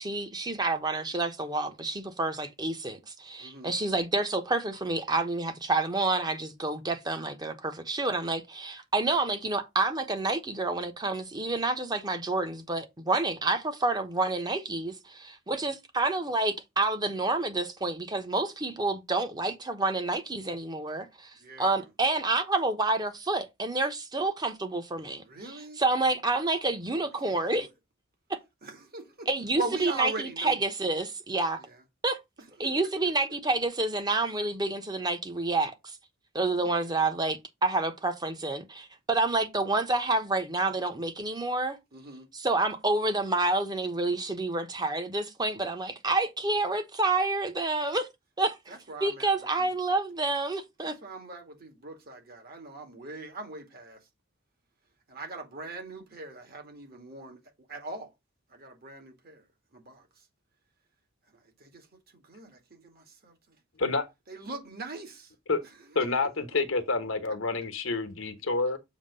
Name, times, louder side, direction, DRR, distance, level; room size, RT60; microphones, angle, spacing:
voice 1, 0.0-27.7 28.3-28.4 29.3-31.6 32.0-32.2 32.6-36.0 36.3-41.8 42.3-48.1 48.4-48.7 49.0-50.9, right 2 dB, 20° right, 1.0 m, -29 dB
voice 2, 3.4-3.7 21.4-21.9 25.2-25.8 27.2-27.7 28.6-29.3 29.6-30.6 32.6-32.7 41.9-42.3 48.7-49.8 50.8-54.0 55.1-57.4 57.7-58.1 58.5-59.5 59.7-60.1 61.6-61.9 62.1-63.6 64.3-65.3 66.0-66.2, right 3 dB, 50° right, 2.0 m, -41 dB
voice 3, 65.9-68.8, left 3 dB, 75° left, 1.2 m, -28 dB
7.2 x 2.9 x 5.4 m
head